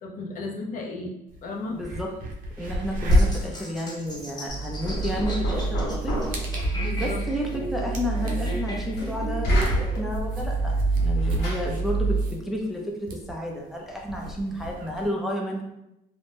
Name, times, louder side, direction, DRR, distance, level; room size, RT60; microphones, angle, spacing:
voice 1, 0.0-1.1 1.4-1.8 6.7-7.2, left 2 dB, 55° left, 0 dB, 0.6 m, -34 dB
sound 1, 1.3-1.4 1.7-15.1, equal, 55° right, 0.6 m, -31 dB
voice 2, 1.7-2.1 2.6-6.6 7.0-10.7 11.0-15.6, equal, ahead, -1 dB, 0.4 m, -31 dB
sound 2, 3.1-10.0, equal, 25° left, 0.9 m, -37 dB
Knock, 4.5-12.4, right 2 dB, 85° left, 1.2 m, -27 dB
2.5 x 2.1 x 3.3 m, 0.86 s
cardioid pair, 110°, 17 cm